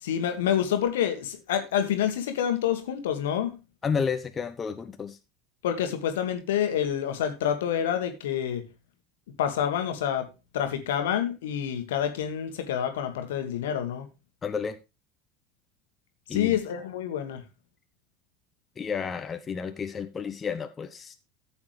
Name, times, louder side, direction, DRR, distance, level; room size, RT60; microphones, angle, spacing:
voice 1, 0.0-3.5 5.6-8.6 9.4-10.3 10.5-14.1 16.3-17.4, left 9 dB, 65° left, 1.7 m, -27 dB
voice 2, 3.8-5.2 14.4-14.8 16.3-16.6 18.8-21.1, left 6 dB, 25° left, 0.9 m, -31 dB
14.0 x 7.1 x 3.3 m
figure-of-eight pair, 70°, 0 cm